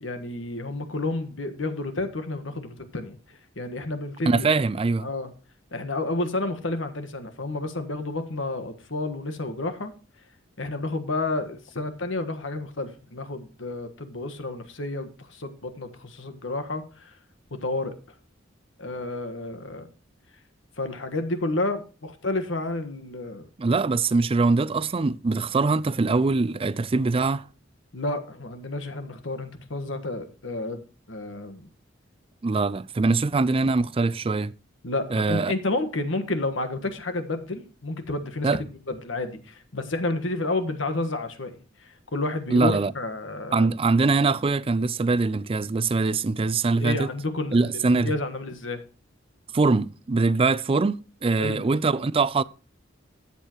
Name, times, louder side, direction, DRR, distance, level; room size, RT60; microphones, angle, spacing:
voice 1, 0.0-4.5 5.0-5.3 5.7-9.9 10.6-17.1 17.5-17.9 18.8-19.9 20.8-23.5 27.9-30.8 31.1-31.7 34.8-38.5 38.9-41.5 41.8-43.7 46.8-48.8 51.4-51.6, left 2 dB, 75° left, 1.5 m, -30 dB
voice 2, 4.3-5.1 23.6-27.4 32.4-34.5 35.1-35.5 38.4-38.6 42.5-42.9 43.5-47.1 47.5-48.1 49.5-52.4, right 3 dB, 30° right, 0.4 m, -23 dB
13.5 x 8.4 x 3.0 m
head